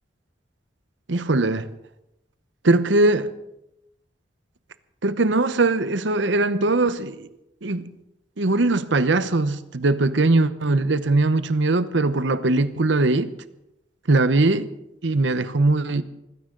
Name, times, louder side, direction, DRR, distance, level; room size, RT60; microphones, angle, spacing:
voice 1, 1.1-1.7 2.6-3.3 5.0-7.3 7.6-7.9 8.4-13.3 14.1-14.6 15.0-16.0, right 2 dB, 75° right, 0.9 m, -20 dB
20.5 x 15.0 x 3.9 m
head